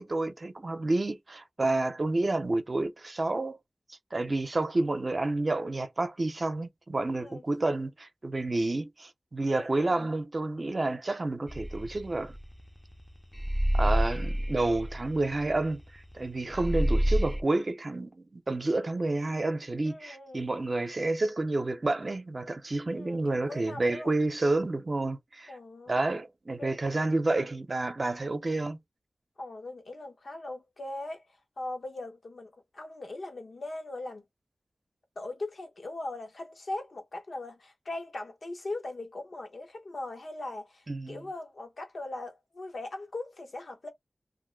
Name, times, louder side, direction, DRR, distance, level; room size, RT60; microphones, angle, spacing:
voice 1, 0.0-3.6 4.1-12.3 13.7-25.5 25.9-28.8 40.9-41.2, right 2 dB, 50° right, 0.6 m, -29 dB
voice 2, 7.1-7.4 9.5-10.1 19.8-20.5 22.9-24.1 25.5-26.0 26.6-27.0 29.4-31.3 31.6-34.2 35.2-43.9, left 2 dB, 80° left, 1.1 m, -40 dB
sound 1, 11.5-12.9 13.3-16.2 16.5-17.4, equal, 5° left, 0.5 m, -28 dB
2.6 x 2.1 x 3.8 m
wide cardioid pair, 55°, 0 cm